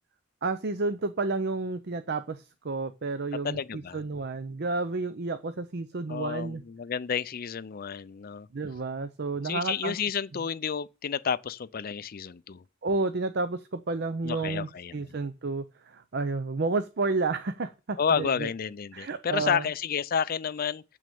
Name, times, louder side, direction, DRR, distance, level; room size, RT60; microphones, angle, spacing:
voice 1, 0.4-6.6 8.5-10.0 12.8-18.5 18.9-19.7, right 3 dB, 55° right, 0.6 m, -31 dB
voice 2, 3.4-4.0 6.1-8.5 9.4-12.6 14.2-15.1 18.0-20.8, left 7 dB, 45° left, 0.4 m, -30 dB
7.7 x 6.3 x 7.0 m
head